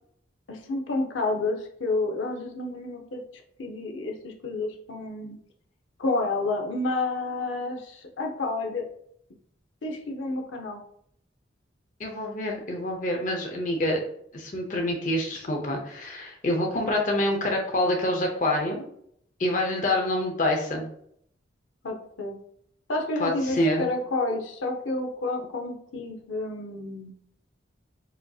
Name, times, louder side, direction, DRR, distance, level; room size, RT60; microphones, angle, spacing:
voice 1, 0.5-3.2 3.6-5.4 6.0-8.9 9.8-10.8 21.8-22.4 22.9-27.1, left 2 dB, 80° left, 1 dB, 0.6 m, -30 dB
voice 2, 12.0-14.0 14.3-18.8 19.4-20.9 23.2-23.9, left 1 dB, 40° left, 1 dB, 0.6 m, -26 dB
5.0 x 2.7 x 2.3 m, 0.68 s
head